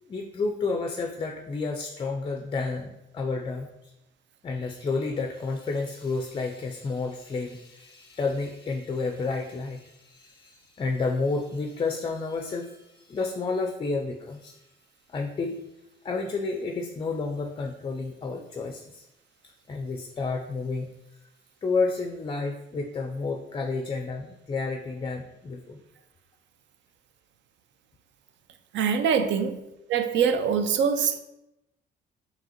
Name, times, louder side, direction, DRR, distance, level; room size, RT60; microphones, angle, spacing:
voice 1, 0.0-3.9 4.4-14.7 15.1-15.6 16.0-19.1 19.4-21.2 21.6-25.8 29.2-29.3, left 3 dB, 25° left, 4 dB, 0.4 m, -31 dB
voice 2, 28.7-29.5 29.9-31.2, right 7 dB, 70° right, 9 dB, 0.4 m, -23 dB
4.9 x 2.9 x 2.8 m, 0.90 s
cardioid pair, 90°, 20 cm